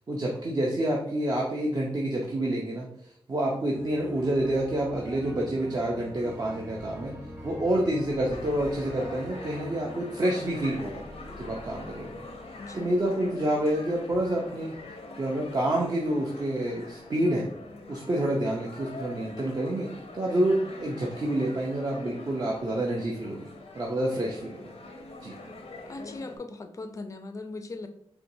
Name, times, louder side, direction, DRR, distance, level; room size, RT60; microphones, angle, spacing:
voice 1, 0.1-7.2 7.4-11.0 11.4-12.2 12.7-14.8 15.2-17.5 17.9-19.9 20.1-23.5 23.7-24.6 25.2-25.3, right 1 dB, 40° right, -2 dB, 0.5 m, -28 dB
sound 1, 3.7-13.8, equal, 20° right, 0.9 m, -44 dB
sound 2, 8.3-26.4, left 2 dB, 90° left, 0.6 m, -44 dB
voice 2, 12.6-12.9 25.9-27.9, left 3 dB, 30° left, 7 dB, 0.4 m, -39 dB
4.4 x 2.8 x 2.6 m, 0.70 s
wide cardioid pair, 135°, 10 cm